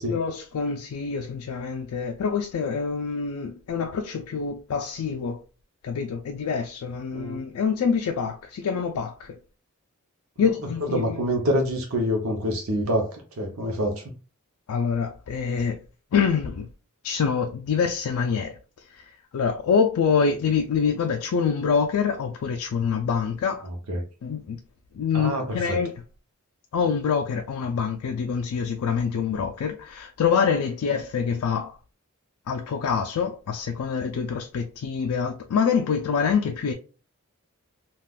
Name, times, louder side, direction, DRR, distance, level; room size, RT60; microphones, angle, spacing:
voice 1, 0.1-5.4 5.8-9.4 10.4-11.2 14.7-15.8 16.1-16.7 17.0-23.7 24.2-24.6 24.9-26.0 26.7-31.8 32.5-36.7, left 6 dB, 80° left, 0.4 m, -26 dB
voice 2, 10.8-14.1 23.6-24.0 25.1-25.8, equal, 70° right, 0.7 m, -26 dB
3.5 x 2.4 x 2.3 m
head